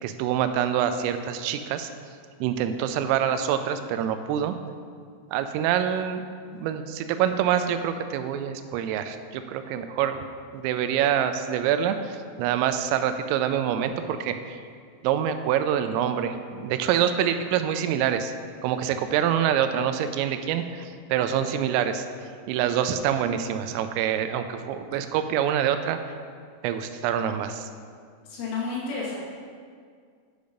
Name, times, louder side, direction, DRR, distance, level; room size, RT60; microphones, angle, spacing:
voice 1, 0.0-1.9 2.4-4.6 5.3-6.2 6.5-10.2 10.5-14.6 15.0-18.3 18.6-22.1 22.5-26.1 26.6-27.7, right 9 dB, 85° right, 9 dB, 3.2 m, -26 dB
voice 2, 28.3-29.2, left 4 dB, 75° left, -5 dB, 4.5 m, -30 dB
9.3 x 7.0 x 5.1 m, 2.1 s
omnidirectional pair, 5.9 m